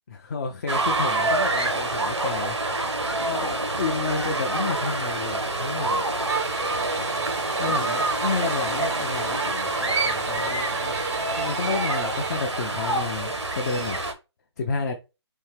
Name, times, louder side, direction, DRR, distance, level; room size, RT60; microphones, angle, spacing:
voice 1, 0.1-2.6 3.2-6.0 7.6-11.0 11.4-14.0 14.6-14.9, left 4 dB, 40° left, 0.6 m, -31 dB
sound 1, 0.7-14.1, right 2 dB, 90° right, 1.2 m, -26 dB
Bowed string instrument, 6.3-12.5, right 9 dB, 35° right, 0.4 m, -36 dB
4.4 x 2.8 x 3.2 m
figure-of-eight pair, 150°, 14 cm